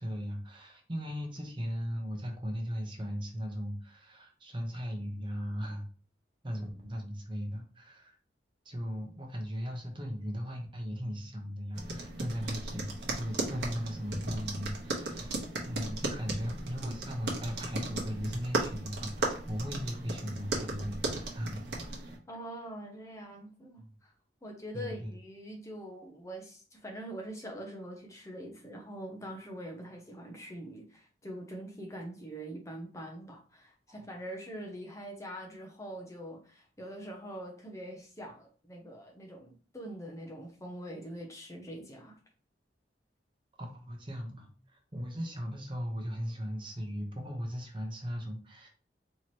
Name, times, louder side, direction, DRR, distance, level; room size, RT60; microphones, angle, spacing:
voice 1, 0.0-5.8 6.4-8.2 8.6-15.4 15.6-22.0 23.8-23.9 24.7-25.1 33.9-34.1 43.6-48.7, equal, 30° right, 0.8 m, -38 dB
sound 1, 11.7-22.2, right 2 dB, 75° right, 1.0 m, -36 dB
voice 2, 22.3-24.1 24.4-42.2, right 1 dB, 20° left, 0.6 m, -44 dB
4.4 x 2.9 x 3.0 m
head